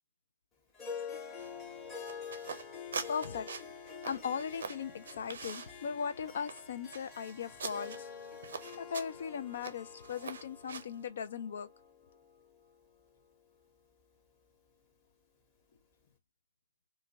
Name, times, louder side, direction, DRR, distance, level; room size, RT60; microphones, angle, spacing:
Harp, 0.7-13.3, left 6 dB, 20° left, 1.1 m, -47 dB
sound 1, 1.4-11.1, right 5 dB, 60° right, 0.5 m, -45 dB
voice 1, 3.1-3.5 4.0-8.1 8.8-11.7, left 7 dB, 60° left, 0.5 m, -38 dB
2.5 x 2.5 x 2.9 m
figure-of-eight pair, 125°, 0 cm